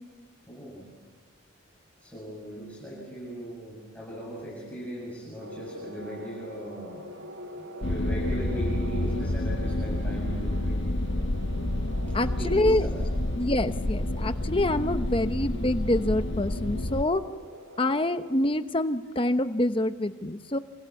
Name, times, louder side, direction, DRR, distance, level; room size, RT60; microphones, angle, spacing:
voice 1, 0.5-0.9 2.0-10.9 12.1-13.1, right 1 dB, 5° left, -5 dB, 7.2 m, -38 dB
sound 1, 5.4-18.4, equal, 85° right, 2.6 m, -44 dB
sound 2, 7.8-17.0, left 1 dB, 60° left, 1.1 m, -29 dB
voice 2, 12.1-12.9 13.4-17.2 17.8-20.6, left 1 dB, 25° left, 10 dB, 0.9 m, -26 dB
28.0 x 27.0 x 7.2 m, 1.3 s
head